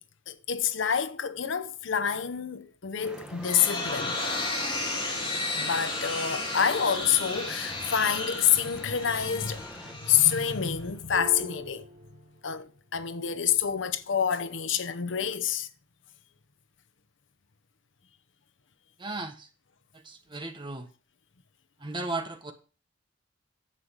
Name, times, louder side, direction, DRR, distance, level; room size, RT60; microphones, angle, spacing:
voice 1, 0.3-4.2 5.5-11.9 12.4-15.7, left 8 dB, 75° left, 0.8 m, -27 dB
sound 1, 3.0-10.0, right 1 dB, 5° right, 1.2 m, -46 dB
sound 2, 3.1-10.9, left 2 dB, 25° left, 3.2 m, -34 dB
sound 3, 4.1-8.3 11.1-12.6 13.2-14.9, right 3 dB, 80° right, 3.1 m, -46 dB
voice 2, 19.0-19.5 19.9-20.9 21.8-22.5, right 2 dB, 25° right, 1.4 m, -35 dB
10.0 x 8.0 x 4.8 m
head